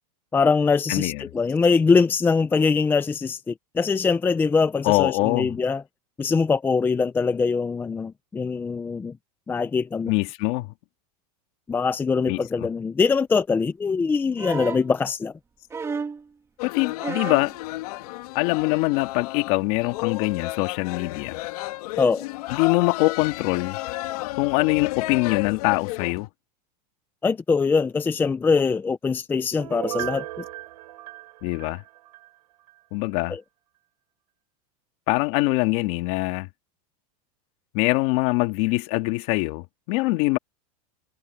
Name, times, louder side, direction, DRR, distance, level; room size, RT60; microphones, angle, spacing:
voice 1, 0.3-5.8 6.2-9.2 9.5-10.1 11.7-15.3 22.0-22.3 27.2-30.4 33.3-33.4, left 5 dB, 10° left, 0.6 m, -23 dB
voice 2, 0.9-1.2 4.8-5.5 10.1-10.7 12.3-12.7 16.6-17.5 18.3-21.4 22.5-23.8 24.4-26.3 31.4-31.8 32.9-33.4 35.1-36.5 37.7-40.4, left 22 dB, 50° left, 2.1 m, -23 dB
sound 1, 14.4-14.9 15.7-16.2 17.0-17.5 18.7-18.8, right 5 dB, 15° right, 2.4 m, -31 dB
sound 2, 16.6-26.3, left 19 dB, 70° left, 2.7 m, -32 dB
Piano, 29.6-32.3 32.7-32.8, right 16 dB, 85° right, 6.7 m, -35 dB
supercardioid pair, 155°, 20 cm